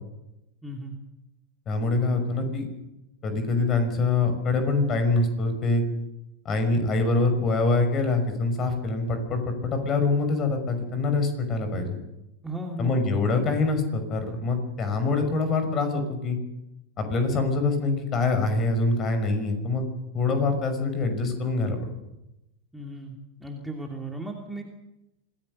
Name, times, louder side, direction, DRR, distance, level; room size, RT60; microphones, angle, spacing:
voice 1, 0.6-1.0 12.4-12.9 22.7-24.6, right 1 dB, 5° right, 1 dB, 2.8 m, -36 dB
voice 2, 1.7-2.7 3.2-5.8 6.4-12.0 12.8-16.4 17.0-19.8 20.1-21.8, left 3 dB, 30° left, 8 dB, 5.9 m, -25 dB
26.5 x 18.0 x 6.6 m, 0.91 s
figure-of-eight pair, 90°, 0 cm